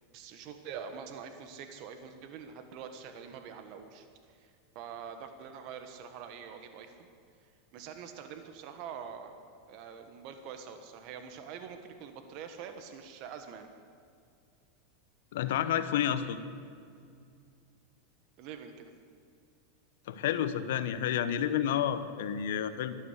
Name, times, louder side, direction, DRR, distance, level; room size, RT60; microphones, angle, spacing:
voice 1, 0.1-7.1 7.7-9.4 9.7-13.7 18.4-18.9, right 7 dB, 55° right, 7 dB, 1.4 m, -45 dB
voice 2, 15.3-16.4 20.1-23.0, left 10 dB, 75° left, 11 dB, 1.0 m, -30 dB
12.5 x 12.5 x 8.2 m, 2.4 s
supercardioid pair, 125°, 0 cm